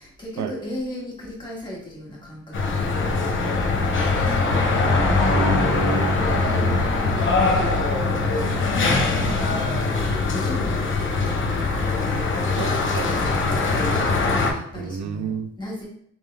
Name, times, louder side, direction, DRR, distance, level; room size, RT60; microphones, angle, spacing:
voice 1, 0.0-3.3 3.7-5.4 5.9-8.8 9.7-12.1 14.3-15.8, left 1 dB, 15° left, -3 dB, 1.6 m, -37 dB
sound 1, 2.5-14.5, left 3 dB, 40° left, 0.8 m, -22 dB
voice 2, 5.3-6.1 12.6-13.1 14.8-15.5, right 6 dB, 75° right, 9 dB, 0.6 m, -29 dB
4.1 x 3.6 x 3.4 m, 0.68 s
wide cardioid pair, 125°, 29 cm